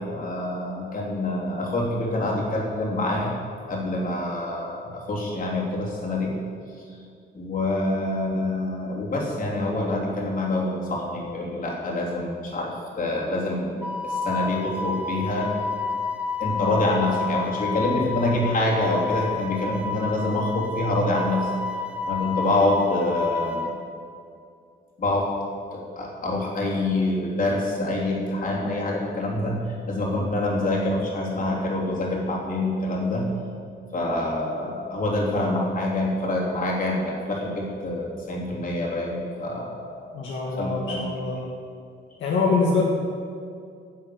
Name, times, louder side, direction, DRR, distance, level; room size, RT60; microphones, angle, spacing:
voice 1, 0.0-3.3 3.7-6.3 7.4-15.5 16.4-21.5 22.1-23.7 25.0-25.3 25.7-33.2 33.9-40.1 40.4-41.1, left 2 dB, 45° left, -3 dB, 3.4 m, -26 dB
Wind instrument woodwind instrument, 13.8-23.7, left 4 dB, 5° right, 1.2 m, -30 dB
voice 2, 40.1-41.5 42.2-42.8, left 4 dB, 70° left, -3 dB, 1.8 m, -24 dB
11.5 x 7.3 x 7.1 m, 2.3 s
cardioid pair, 90°, 20 cm